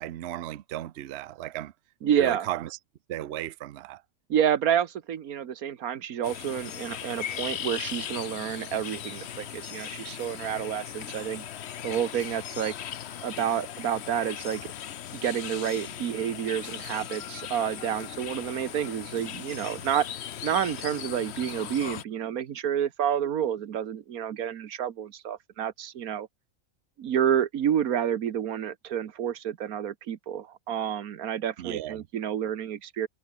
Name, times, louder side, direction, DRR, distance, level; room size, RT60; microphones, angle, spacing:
voice 1, 0.0-1.7 2.2-2.7 3.1-4.0 31.6-32.1, right 13 dB, 60° right, 0.8 m, -35 dB
voice 2, 2.0-2.5 4.3-11.5 11.8-12.7 13.2-14.7 15.1-20.1 20.4-26.3 27.0-33.1, right 9 dB, 90° right, 1.5 m, -29 dB
sound 1, 6.2-22.0, left 10 dB, 55° left, 0.9 m, -38 dB
omnidirectional pair, 1.5 m